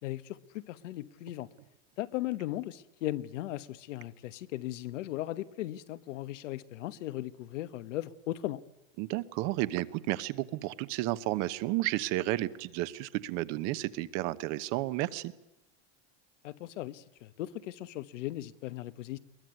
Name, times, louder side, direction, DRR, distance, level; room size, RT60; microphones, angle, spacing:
voice 1, 0.0-1.5 2.0-8.6 16.4-19.2, left 15 dB, 90° left, 1.3 m, -37 dB
voice 2, 9.0-15.3, right 17 dB, 50° right, 1.1 m, -32 dB
22.0 x 20.0 x 9.4 m
supercardioid pair, 150°, 36 cm